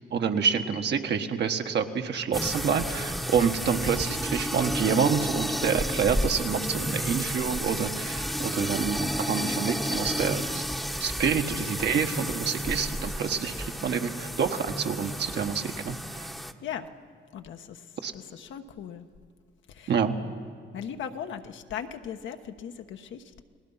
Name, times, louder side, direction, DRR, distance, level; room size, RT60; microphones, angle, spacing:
voice 1, 0.1-10.6 11.0-16.3 18.0-18.1 19.9-20.2, right 6 dB, 60° right, 5 dB, 1.4 m, -27 dB
sound 1, 2.3-16.5, equal, ahead, 1.0 m, -32 dB
voice 2, 17.3-17.9 18.1-19.1 19.7-19.9 20.7-23.4, left 8 dB, 75° left, 7 dB, 1.2 m, -38 dB
29.5 x 19.5 x 5.7 m, 2.2 s
cardioid pair, 90°, 20 cm